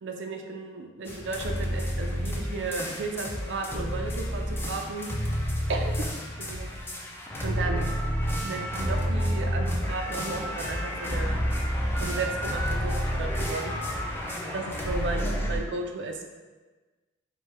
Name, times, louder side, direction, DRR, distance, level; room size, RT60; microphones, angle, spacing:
voice 1, 0.0-5.1 5.7-5.9 6.4-6.7 7.4-7.9 8.4-11.4 12.0-13.7 14.5-16.3, right 3 dB, 70° right, 3 dB, 0.5 m, -34 dB
sound 1, 1.1-15.6, equal, 10° left, 0.5 m, -30 dB
4.7 x 2.2 x 4.2 m, 1.3 s
head